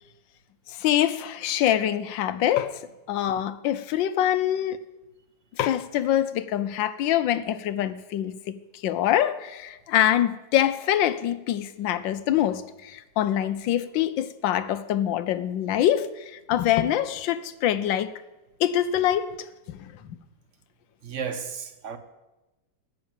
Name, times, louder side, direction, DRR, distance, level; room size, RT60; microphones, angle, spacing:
voice 1, 0.8-2.8 3.1-4.8 5.6-8.4 8.8-18.1 18.6-19.3 19.7-20.2, left 11 dB, 80° left, 1.4 m, -24 dB
voice 2, 21.0-22.0, right 6 dB, 45° right, 1.1 m, -33 dB
14.0 x 6.2 x 8.9 m
omnidirectional pair, 2.1 m